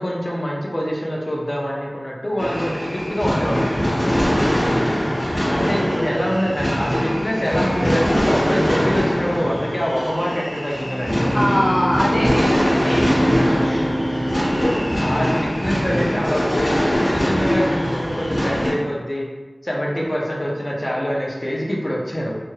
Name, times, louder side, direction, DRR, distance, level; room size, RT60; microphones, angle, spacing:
voice 1, 0.0-4.1 5.5-11.4 13.5-13.7 14.6-19.3 19.6-22.3, equal, 40° left, -2 dB, 0.6 m, -25 dB
sound 1, 2.4-18.7, equal, 80° left, 1.2 m, -22 dB
voice 2, 4.6-5.0 11.3-14.8 19.8-20.1, equal, 20° left, -11 dB, 1.3 m, -25 dB
Bowed string instrument, 10.8-16.0, equal, 15° right, 0.6 m, -26 dB
3.0 x 2.3 x 2.8 m, 1.2 s
wide cardioid pair, 55°, 0 cm